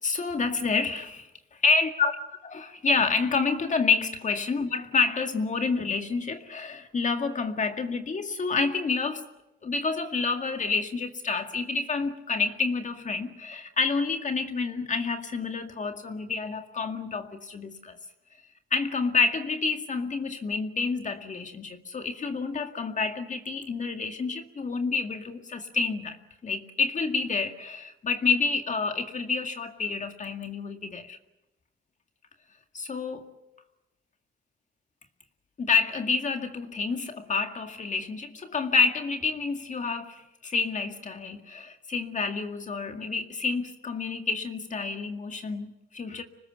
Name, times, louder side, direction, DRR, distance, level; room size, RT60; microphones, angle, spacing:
voice 1, 0.0-2.2 2.4-9.3 9.6-18.0 18.7-26.2 26.4-31.2 32.7-33.3 35.6-46.2, left 4 dB, 40° left, 2.1 m, -28 dB
26.0 x 19.5 x 9.2 m
cardioid pair, 90°, 20 cm